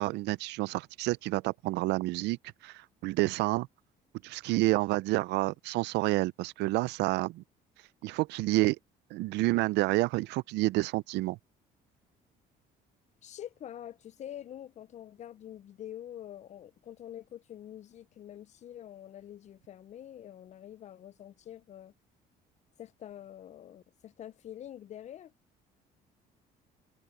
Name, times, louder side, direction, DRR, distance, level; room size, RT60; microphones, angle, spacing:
voice 1, 0.0-2.4 2.6-3.7 4.2-7.4 8.0-8.8 9.1-11.4, right 20 dB, 80° right, 0.4 m, -29 dB
voice 2, 13.2-21.9 22.8-25.3, left 11 dB, 40° left, 0.4 m, -46 dB
cardioid pair, 115°, 17 cm